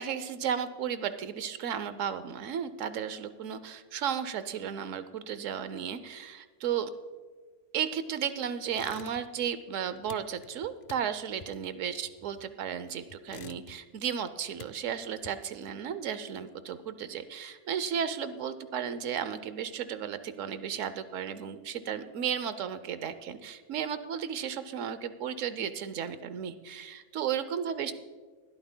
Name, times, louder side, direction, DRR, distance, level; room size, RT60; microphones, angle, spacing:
voice 1, 0.0-6.9 7.7-27.9, right 8 dB, 80° right, 12 dB, 1.0 m, -34 dB
sound 1, 8.7-9.5 9.7-12.7 13.1-14.0 14.3-15.7, left 7 dB, 70° left, 0.4 m, -50 dB
19.5 x 12.5 x 2.2 m, 1.5 s
omnidirectional pair, 1.3 m